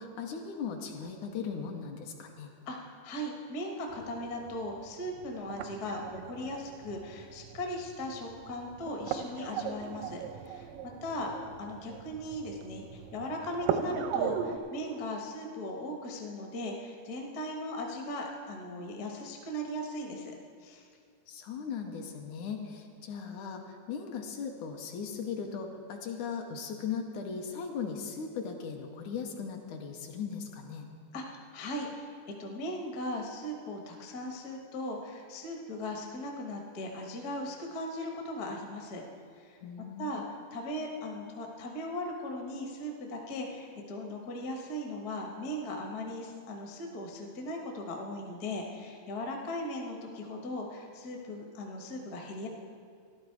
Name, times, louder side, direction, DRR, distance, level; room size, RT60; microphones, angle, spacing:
voice 1, 0.0-2.5 21.3-30.9 39.6-40.1, left 6 dB, 75° left, 2 dB, 2.2 m, -38 dB
voice 2, 2.7-11.3 11.6-20.3 20.6-20.9 31.1-39.0 39.3-39.6 40.0-40.2 40.5-52.5, left 1 dB, 45° left, 1 dB, 1.2 m, -38 dB
sound 1, 3.9-14.6, right 8 dB, 85° right, 2.2 m, -39 dB
13.5 x 12.0 x 4.6 m, 2.2 s
omnidirectional pair, 3.7 m